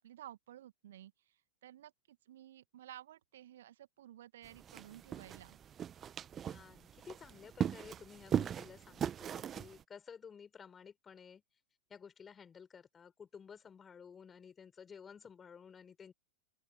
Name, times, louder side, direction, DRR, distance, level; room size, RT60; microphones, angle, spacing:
voice 1, 0.0-5.6, right 12 dB, 60° right, 2.0 m, -54 dB
sound 1, 4.4-9.8, right 9 dB, 25° right, 1.2 m, -39 dB
voice 2, 6.4-11.4 11.9-16.1, left 6 dB, 20° left, 5.1 m, -54 dB
open air
figure-of-eight pair, 90°, 0 cm